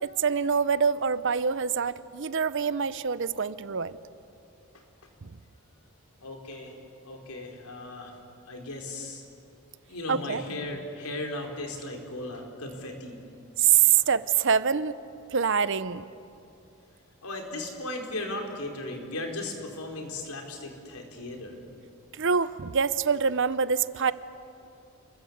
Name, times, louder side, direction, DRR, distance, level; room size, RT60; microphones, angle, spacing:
voice 1, 0.0-4.0 10.1-10.4 13.6-15.0 15.3-16.1 22.1-24.1, right 7 dB, 55° right, 15 dB, 0.7 m, -25 dB
voice 2, 6.2-6.8 7.0-8.1 8.5-9.2 9.9-13.2 14.0-14.1 17.2-21.6, left 2 dB, 80° left, 2 dB, 4.3 m, -36 dB
29.0 x 22.0 x 8.1 m, 2.6 s
head